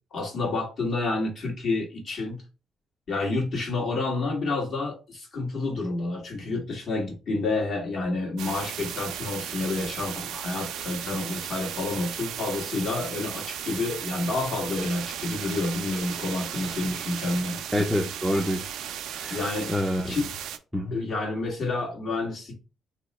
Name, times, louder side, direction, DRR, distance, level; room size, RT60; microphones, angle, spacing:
voice 1, 0.1-2.4 3.1-17.6 19.3-19.7 20.1-20.3 20.9-22.5, left 3 dB, 55° left, -1 dB, 1.6 m, -29 dB
sound 1, 8.4-20.6, right 9 dB, 85° right, 0.4 m, -36 dB
voice 2, 17.7-18.7 19.1-19.4 19.7-20.1 20.7-21.0, left 1 dB, ahead, 0 dB, 0.5 m, -27 dB
2.9 x 2.1 x 4.1 m, 0.32 s
cardioid pair, 90°, 0 cm